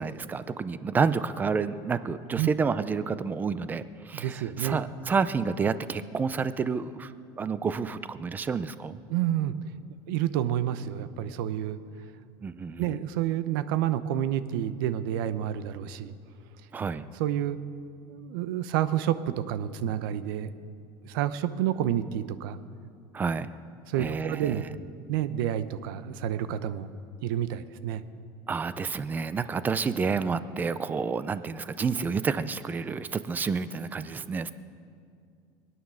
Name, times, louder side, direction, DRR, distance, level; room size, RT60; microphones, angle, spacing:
voice 1, 0.0-7.1 7.4-9.0 12.4-13.0 16.7-17.1 23.1-23.5 24.0-24.7 28.5-34.5, right 5 dB, 15° right, 14 dB, 0.4 m, -29 dB
voice 2, 4.1-4.8 9.1-9.5 10.1-11.8 12.8-16.2 17.2-17.6 18.1-20.5 21.0-22.6 23.9-24.7 25.1-26.9 27.2-28.0, right 11 dB, 90° right, 13 dB, 0.8 m, -29 dB
23.0 x 9.4 x 6.3 m, 2.3 s
cardioid pair, 160°, 11 cm